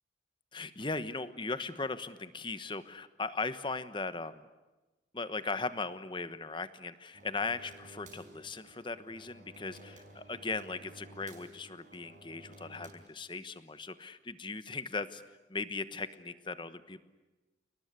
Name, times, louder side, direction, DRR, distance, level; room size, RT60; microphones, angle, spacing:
voice 1, 0.5-4.5 5.1-15.2 15.5-17.0, left 3 dB, 25° left, 13 dB, 1.1 m, -38 dB
sound 1, 7.1-12.9, right 1 dB, 45° right, 5.7 m, -54 dB
29.5 x 19.0 x 9.7 m, 1.1 s
head